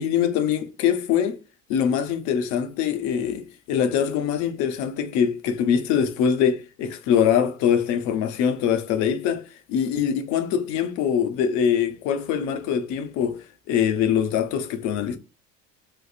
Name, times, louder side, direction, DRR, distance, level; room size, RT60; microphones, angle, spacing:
voice 1, 0.0-1.4 1.7-15.2, left 8 dB, 60° left, 0.7 m, -23 dB
3.4 x 3.1 x 2.4 m
cardioid pair, 150°, 32 cm